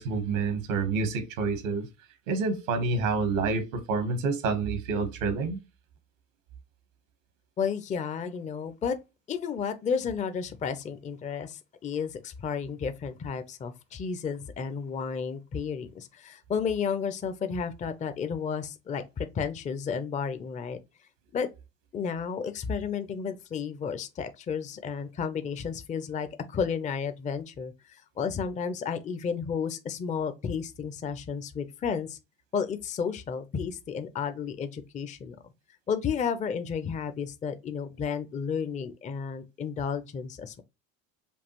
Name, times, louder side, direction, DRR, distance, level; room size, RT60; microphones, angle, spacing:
voice 1, 0.0-1.9 2.3-5.6, right 4 dB, 75° right, 1.2 m, -28 dB
voice 2, 7.6-9.0 9.3-20.8 21.3-21.5 21.9-32.2 32.5-35.4 35.9-40.6, left 6 dB, 20° left, 0.5 m, -32 dB
5.3 x 2.3 x 2.9 m
hypercardioid pair, 70°, 40 cm